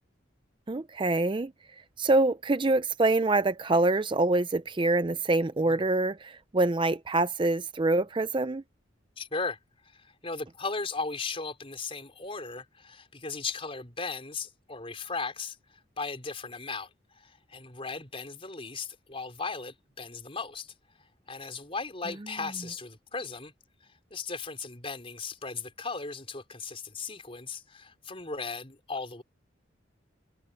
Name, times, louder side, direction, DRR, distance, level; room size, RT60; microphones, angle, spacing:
voice 1, 0.7-1.5 2.0-8.6, right 2 dB, 25° right, 0.5 m, -25 dB
voice 2, 9.2-9.6 9.8-15.6 16.0-20.7 21.3-23.5 24.1-29.2, left 4 dB, 30° left, 4.5 m, -37 dB
head